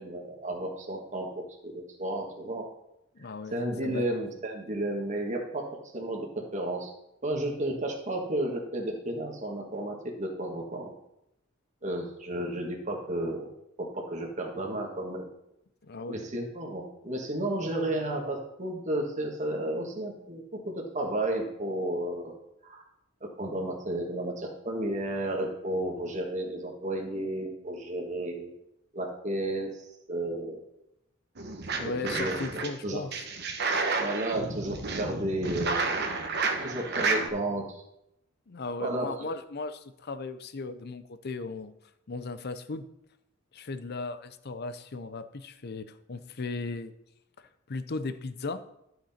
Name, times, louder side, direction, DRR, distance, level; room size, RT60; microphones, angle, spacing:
voice 1, 0.0-2.7 3.5-5.7 5.9-6.9 7.2-10.9 11.8-13.5 13.8-15.3 16.1-22.3 22.6-22.8 23.2-28.5 28.9-29.8 30.1-30.6 32.0-33.0 33.9-35.8 36.6-37.8 38.8-39.3, right 1 dB, 35° right, 0 dB, 1.6 m, -32 dB
voice 2, 3.2-4.1 15.8-16.2 31.8-33.1 38.5-41.7 42.1-42.9 43.5-46.9 47.7-48.6, left 3 dB, 55° left, 12 dB, 0.6 m, -36 dB
sound 1, 31.4-32.7 33.1-37.3, right 4 dB, 55° right, 1.1 m, -31 dB
12.0 x 6.1 x 4.3 m, 0.81 s
head